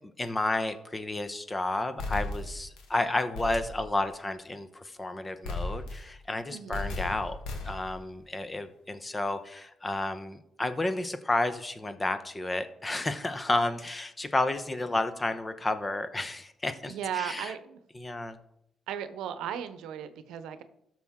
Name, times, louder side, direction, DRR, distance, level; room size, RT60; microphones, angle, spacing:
voice 1, 0.2-7.4 7.6-17.5 17.9-18.4, left 2 dB, 20° left, 10 dB, 0.9 m, -31 dB
sound 1, 2.0-2.9 3.3-3.9 5.4-6.2 6.7-8.0, left 2 dB, 90° left, 1.8 m, -36 dB
voice 2, 6.5-6.9 16.9-17.8 18.9-20.6, right 9 dB, 85° right, 11 dB, 0.8 m, -36 dB
13.0 x 6.1 x 3.7 m, 0.77 s
cardioid pair, 90°, 0 cm